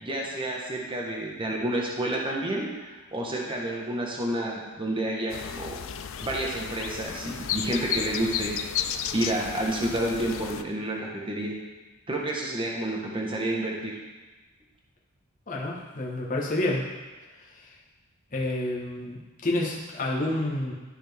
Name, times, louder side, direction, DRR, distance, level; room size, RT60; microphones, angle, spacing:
voice 1, 0.0-2.7 3.1-5.8 6.2-8.5 9.1-11.5 12.1-13.9, right 1 dB, 25° right, -2 dB, 1.1 m, -29 dB
sound 1, 5.3-10.6, left 9 dB, 60° left, 0.4 m, -33 dB
voice 2, 15.5-16.9 18.3-20.7, left 1 dB, 35° left, -3 dB, 1.3 m, -29 dB
12.5 x 4.3 x 3.5 m, 1.2 s
head